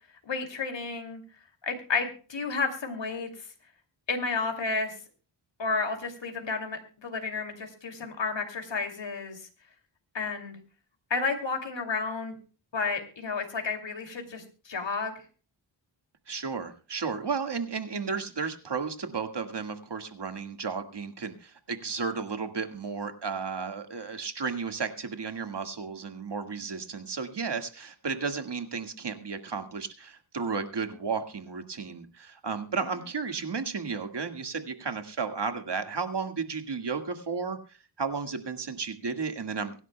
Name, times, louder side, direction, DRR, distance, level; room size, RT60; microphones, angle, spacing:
voice 1, 0.2-1.2 1.6-3.5 4.1-4.9 5.6-9.5 10.1-10.6 11.1-12.3 12.7-15.1 32.7-32.8, left 4 dB, 65° left, 5 dB, 2.7 m, -31 dB
voice 2, 16.3-39.8, right 5 dB, 55° right, 7 dB, 1.9 m, -33 dB
24.0 x 10.5 x 2.2 m, 0.38 s
wide cardioid pair, 70°, 48 cm